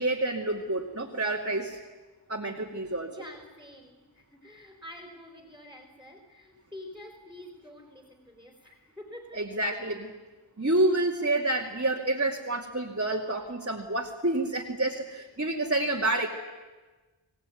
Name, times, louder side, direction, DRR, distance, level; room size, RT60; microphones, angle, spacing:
voice 1, 0.0-1.8 2.3-3.1 9.3-10.1 10.6-16.3, right 2 dB, 35° right, -1 dB, 2.5 m, -28 dB
voice 2, 3.1-9.5, left 1 dB, 5° right, 3 dB, 4.3 m, -47 dB
26.0 x 18.0 x 9.4 m, 1.3 s
wide cardioid pair, 45°, 44 cm